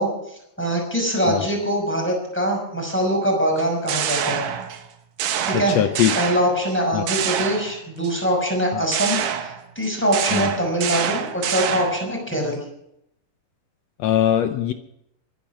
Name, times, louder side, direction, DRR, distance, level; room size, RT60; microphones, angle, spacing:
voice 1, 0.0-4.5 5.4-5.9 6.2-12.7, equal, 5° left, 1 dB, 5.5 m, -23 dB
sound 1, 3.6-4.9 5.2-6.7 7.1-8.1 8.9-12.1, right 9 dB, 80° right, 2.9 m, -26 dB
voice 2, 5.5-6.1 6.9-7.0 8.7-8.9 10.3-10.5 14.0-14.7, left 11 dB, 75° left, 8 dB, 1.5 m, -21 dB
22.5 x 10.5 x 6.1 m, 0.80 s
omnidirectional pair, 3.8 m